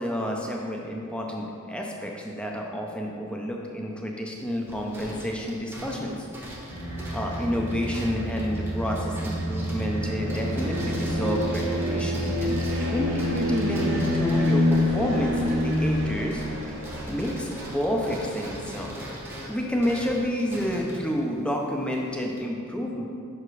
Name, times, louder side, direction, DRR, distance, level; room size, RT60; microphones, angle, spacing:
voice 1, 0.0-6.3 7.1-16.4 17.1-18.9 19.5-23.0, equal, 5° left, 0 dB, 0.6 m, -29 dB
sound 1, 4.4-16.0 16.3-22.4, right 1 dB, 10° right, 1.0 m, -42 dB
sound 2, 6.7-20.2, left 1 dB, 65° right, 1.4 m, -28 dB
5.8 x 4.9 x 4.7 m, 2.4 s
head